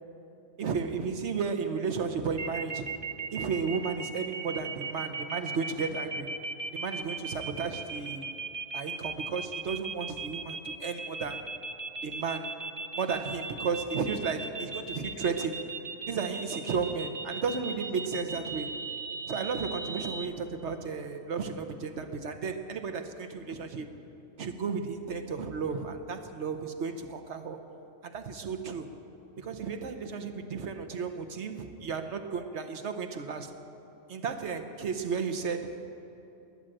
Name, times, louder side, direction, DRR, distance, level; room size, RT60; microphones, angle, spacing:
voice 1, 0.6-2.9 3.3-6.3 6.7-8.3 8.7-11.5 12.0-12.6 13.0-15.7 16.1-18.8 19.3-23.9 24.4-27.6 28.0-28.9 29.4-33.5 34.1-35.7, right 5 dB, 70° right, 7 dB, 1.2 m, -33 dB
sound 1, 2.4-20.2, right 4 dB, 30° right, 0.5 m, -37 dB
20.5 x 7.7 x 9.0 m, 2.9 s
omnidirectional pair, 1.3 m